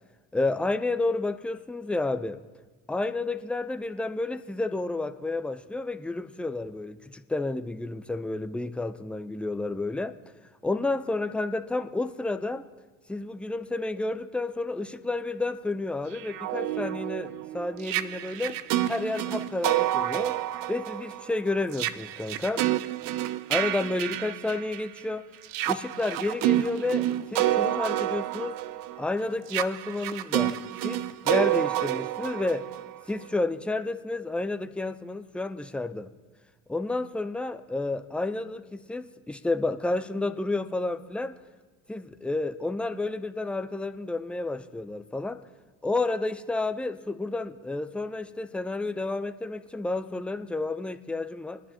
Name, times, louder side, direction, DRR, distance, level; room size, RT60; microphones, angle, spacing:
voice 1, 0.3-2.4 2.9-10.3 10.6-12.7 13.1-18.6 18.9-20.4 20.7-22.7 23.5-25.2 25.7-28.6 29.0-30.6 30.8-32.6 33.1-36.1 36.7-41.4 41.9-45.4 45.8-51.6, left 2 dB, 5° left, 10 dB, 0.6 m, -30 dB
sound 1, 16.1-25.0 25.4-33.3, right 14 dB, 55° right, 0.6 m, -29 dB
22.5 x 10.0 x 2.9 m, 1.3 s
hypercardioid pair, 70°, 41 cm